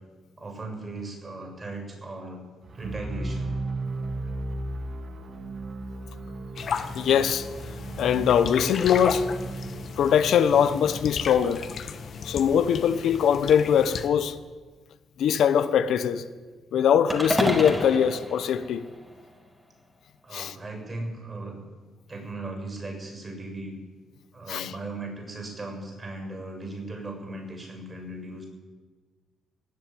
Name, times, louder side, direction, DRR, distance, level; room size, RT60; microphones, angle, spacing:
voice 1, 0.4-2.4 2.7-3.6 20.2-21.6 22.1-23.8 24.3-28.5, right 2 dB, 30° right, 6.9 m, -37 dB
sound 1, 2.6-12.7, right 2 dB, 45° right, 1.3 m, -36 dB
sound 2, 6.6-14.1, left 6 dB, 55° left, 1.2 m, -35 dB
voice 2, 6.9-7.5 8.0-9.3 10.0-11.6 12.2-14.4 15.2-16.2 16.7-18.8 20.3-20.5 24.5-24.7, left 8 dB, 70° left, 0.8 m, -22 dB
sound 3, 17.1-19.4, equal, 5° right, 2.5 m, -30 dB
19.5 x 7.7 x 9.2 m
cardioid pair, 90°, 0 cm